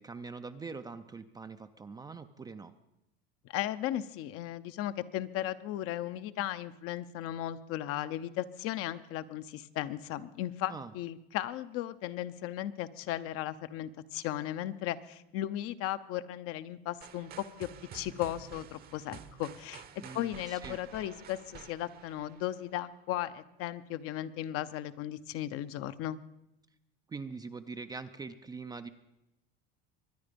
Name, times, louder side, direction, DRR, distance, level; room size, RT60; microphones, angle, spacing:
voice 1, 0.0-2.7 10.7-10.9 20.0-20.8 27.1-28.9, right 4 dB, 15° right, 9 dB, 0.4 m, -43 dB
voice 2, 3.4-19.8 20.1-26.2, left 13 dB, 50° left, 12 dB, 0.7 m, -36 dB
sound 1, 17.0-22.9, right 8 dB, 30° right, 0.8 m, -50 dB
23.5 x 9.8 x 5.2 m, 0.85 s
supercardioid pair, 140°, 30 cm